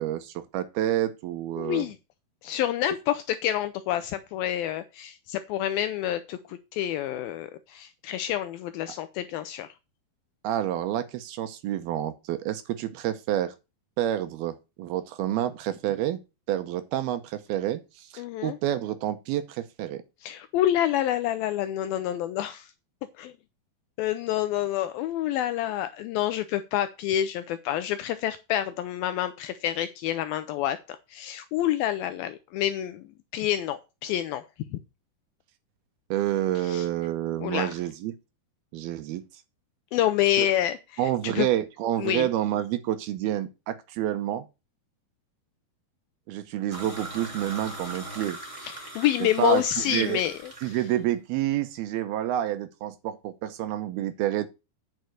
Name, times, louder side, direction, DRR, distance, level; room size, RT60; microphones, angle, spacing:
voice 1, 0.0-1.9 10.4-13.5 14.0-16.2 16.5-20.0 36.1-38.2 38.7-39.2 40.4-40.5 41.0-44.5 46.3-48.4 49.4-50.2 50.6-54.5, right 12 dB, 75° right, 2.6 m, -28 dB
voice 2, 1.6-2.0 2.4-9.7 18.2-18.6 20.2-22.7 23.2-23.3 24.0-33.0 33.3-34.4 34.7-34.8 36.6-36.9 37.4-37.7 39.9-40.8 41.2-41.5 42.0-42.3 48.6-50.8, left 12 dB, 80° left, 2.2 m, -28 dB
sound 1, 46.7-50.9, right 1 dB, 10° right, 1.7 m, -40 dB
9.5 x 5.6 x 6.3 m
omnidirectional pair, 4.8 m